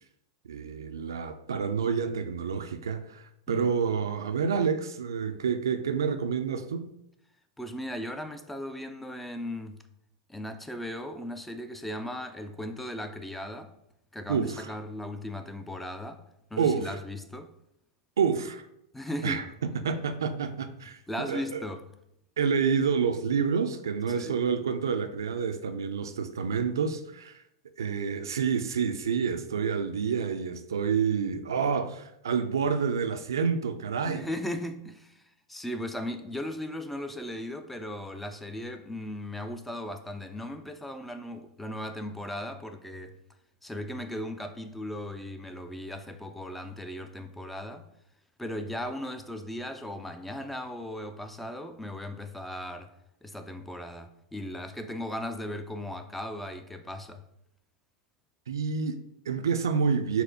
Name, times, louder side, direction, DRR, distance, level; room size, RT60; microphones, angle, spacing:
voice 1, 0.5-6.9 14.3-14.7 16.6-16.9 18.2-18.6 19.2-21.0 21.3-21.6 22.4-27.4 27.8-34.3 58.5-60.2, right 6 dB, 75° right, 0.3 m, -28 dB
voice 2, 3.5-3.8 7.6-9.8 10.3-13.7 14.1-16.2 16.5-17.5 18.9-19.4 21.1-21.8 24.2-24.4 34.0-43.1 43.6-47.9 48.4-52.9 53.2-57.2, left 1 dB, 5° left, 0.4 m, -37 dB
4.2 x 2.1 x 3.9 m
hypercardioid pair, 95°, 2 cm